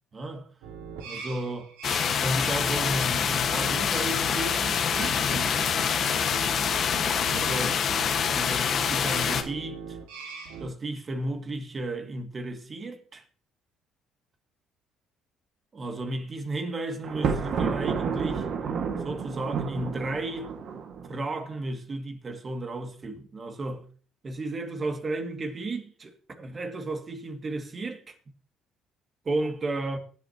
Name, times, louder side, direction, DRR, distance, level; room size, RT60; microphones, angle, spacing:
voice 1, 0.1-0.6 1.0-1.7 2.2-5.8 7.3-7.9 8.3-10.0 10.6-13.2 15.7-18.5 19.0-20.5 21.1-23.9 24.2-28.1 29.3-30.0, right 2 dB, 35° right, 2.2 m, -33 dB
sound 1, 0.6-10.7, right 6 dB, 90° right, 1.9 m, -41 dB
sound 2, 1.8-9.4, left 7 dB, 55° left, 1.4 m, -26 dB
Thunder, 17.0-21.2, right 6 dB, 60° right, 1.8 m, -30 dB
22.5 x 8.3 x 2.9 m
supercardioid pair, 70°, 0 cm